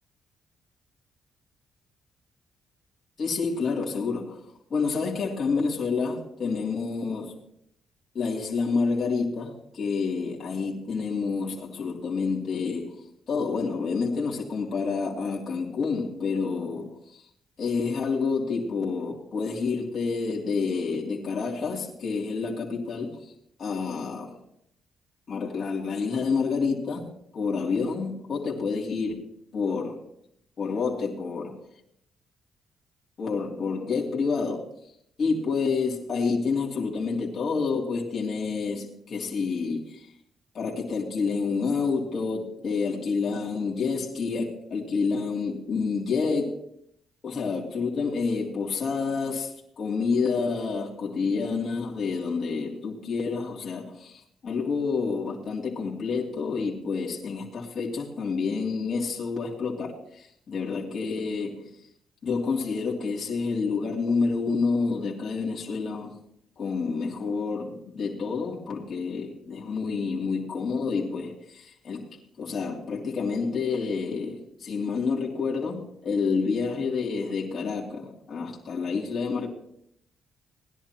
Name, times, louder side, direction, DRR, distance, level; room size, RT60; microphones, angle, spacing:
voice 1, 3.2-4.4 4.7-7.3 8.1-17.2 17.6-23.3 23.6-24.4 25.3-27.0 27.3-29.2 29.5-30.0 30.6-31.6 33.2-34.7 35.2-40.1 40.5-46.6 47.2-61.6 62.2-66.2 66.6-72.0 72.4-79.5, left 4 dB, 50° left, 2.8 m, -28 dB
19.0 x 11.0 x 3.0 m
cardioid pair, 90°, 0 cm